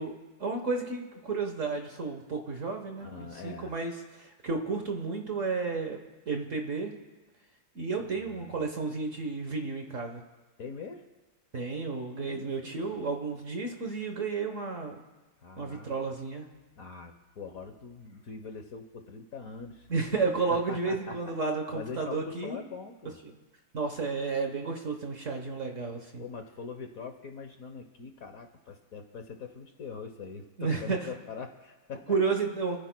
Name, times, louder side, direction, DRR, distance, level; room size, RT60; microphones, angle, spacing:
voice 1, 0.0-6.0 6.3-6.9 7.7-10.2 11.5-15.0 15.6-16.5 19.9-22.6 23.7-26.2 30.6-31.0 32.1-32.8, right 4 dB, 45° right, 4 dB, 1.3 m, -32 dB
voice 2, 3.0-3.7 8.2-8.6 10.6-11.0 12.2-13.0 15.4-16.0 16.8-19.9 20.7-21.2 21.7-23.2 26.2-32.2, left 5 dB, 55° left, 5 dB, 1.2 m, -43 dB
28.5 x 14.5 x 2.2 m, 1.2 s
omnidirectional pair, 2.1 m